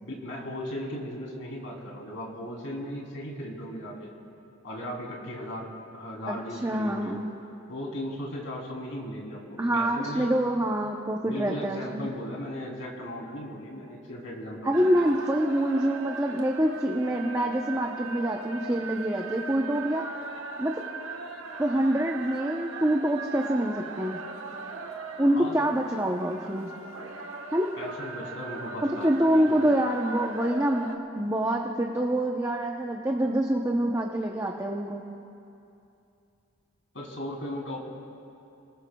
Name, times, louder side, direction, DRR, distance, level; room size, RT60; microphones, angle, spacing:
voice 1, 0.0-4.1 4.6-7.3 7.7-10.3 11.2-15.0 25.2-25.7 27.8-29.7 36.9-37.9, equal, 70° left, -1 dB, 3.3 m, -37 dB
voice 2, 6.3-7.3 9.6-12.1 14.6-20.0 20.6-20.8 21.6-24.2 25.2-26.7 27.5-27.7 28.8-35.0, right 1 dB, 15° right, 0 dB, 0.7 m, -26 dB
sound 1, 14.7-31.0, right 3 dB, 85° right, 1.2 m, -39 dB
29.5 x 20.0 x 2.3 m, 2.7 s
head